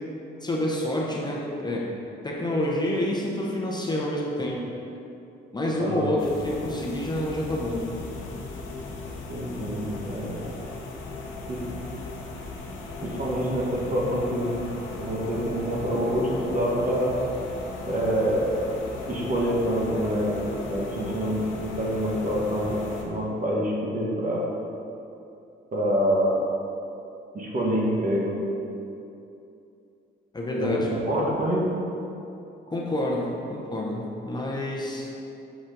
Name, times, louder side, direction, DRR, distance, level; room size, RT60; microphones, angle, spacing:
voice 1, 0.4-1.9 2.2-4.6 5.5-6.2 6.4-7.9 30.3-30.9 32.7-35.1, left 1 dB, 20° left, -3 dB, 0.9 m, -28 dB
voice 2, 5.8-6.1 9.3-10.4 11.5-11.6 13.0-14.5 15.0-17.1 17.8-18.5 19.1-20.4 20.7-24.4 25.7-26.4 27.3-28.3 30.6-31.6, equal, 40° right, -4 dB, 1.5 m, -26 dB
sound 1, 6.2-23.0, left 3 dB, 80° left, 1.0 m, -37 dB
6.1 x 4.1 x 5.2 m, 2.7 s
cardioid pair, 90°, 20 cm